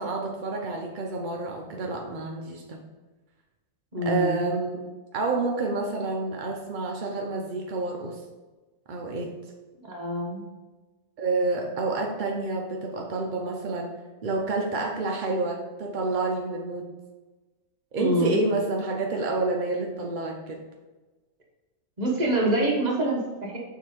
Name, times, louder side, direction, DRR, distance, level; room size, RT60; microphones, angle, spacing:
voice 1, 0.0-2.8 4.0-4.8 5.1-8.2 8.9-9.3 11.2-13.9 14.2-16.8 17.9-20.6, right 3 dB, 60° right, 0 dB, 0.5 m, -28 dB
voice 2, 3.9-4.4 9.8-10.4 18.0-18.4 22.0-23.6, right 1 dB, 30° right, -3 dB, 1.5 m, -26 dB
6.6 x 4.0 x 5.0 m, 1.2 s
omnidirectional pair, 1.7 m